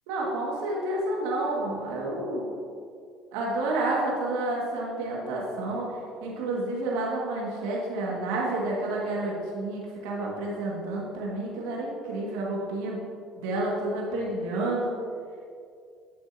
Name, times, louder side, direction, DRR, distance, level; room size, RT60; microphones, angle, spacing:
voice 1, 0.1-2.5 3.3-13.0 13.4-15.0, right 2 dB, 80° right, -3 dB, 1.9 m, -30 dB
9.5 x 7.5 x 2.8 m, 2.3 s
hypercardioid pair, 70°, 0 cm